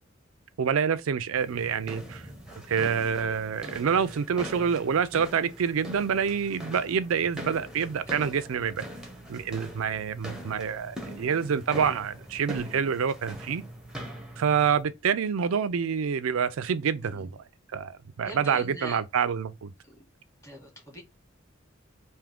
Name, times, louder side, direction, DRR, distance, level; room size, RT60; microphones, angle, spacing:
voice 1, 0.6-2.2 2.7-8.8 9.3-13.6 14.4-17.3 17.7-19.7, right 7 dB, 85° right, 0.4 m, -27 dB
sound 1, 1.4-14.8, equal, 5° right, 0.8 m, -42 dB
voice 2, 17.0-17.3 18.2-19.0 19.9-20.0 20.4-21.0, equal, 15° left, 1.8 m, -42 dB
3.5 x 2.7 x 3.6 m
head